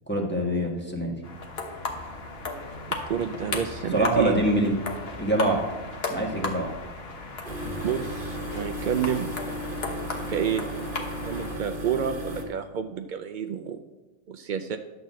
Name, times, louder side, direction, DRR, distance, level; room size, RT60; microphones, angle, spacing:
voice 1, 0.1-1.1 3.9-4.7 5.2-5.6 6.1-6.7, right 1 dB, 10° left, -1 dB, 1.5 m, -24 dB
sound 1, 1.2-11.6, left 3 dB, 50° left, 1.3 m, -35 dB
voice 2, 3.1-4.3 7.8-9.3 10.3-10.7 11.3-13.8 14.3-14.8, right 8 dB, 80° right, 7 dB, 0.4 m, -29 dB
sound 2, 7.4-12.4, equal, 40° right, 1.5 m, -35 dB
11.0 x 3.9 x 7.4 m, 1.2 s
omnidirectional pair, 1.4 m